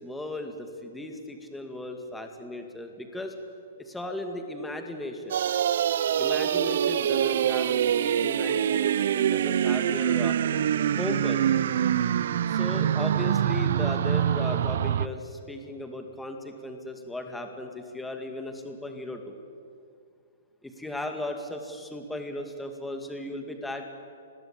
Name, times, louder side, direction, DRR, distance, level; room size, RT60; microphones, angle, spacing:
voice 1, 0.0-3.3 3.8-5.4 6.2-10.4 11.0-11.4 12.5-19.4 20.6-23.8, left 1 dB, 5° left, 4 dB, 2.2 m, -36 dB
sound 1, 5.3-15.1, right 9 dB, 65° right, 0.8 m, -25 dB
29.5 x 22.0 x 8.9 m, 2.4 s
hypercardioid pair, 165°, 0 cm